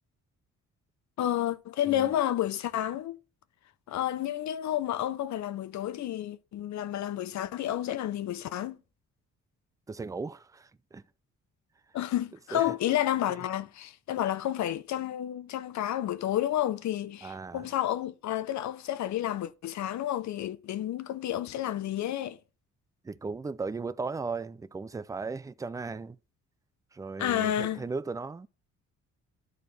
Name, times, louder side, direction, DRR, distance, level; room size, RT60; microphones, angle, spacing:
voice 1, 1.2-3.2 3.9-8.8 11.9-22.4 27.2-27.8, left 12 dB, 65° left, 0.7 m, -30 dB
voice 2, 9.9-11.0 12.5-12.7 17.2-17.7 23.0-26.2 26.9-28.5, right 4 dB, 10° right, 0.3 m, -37 dB
12.5 x 4.2 x 3.3 m
cardioid pair, 90°, 30 cm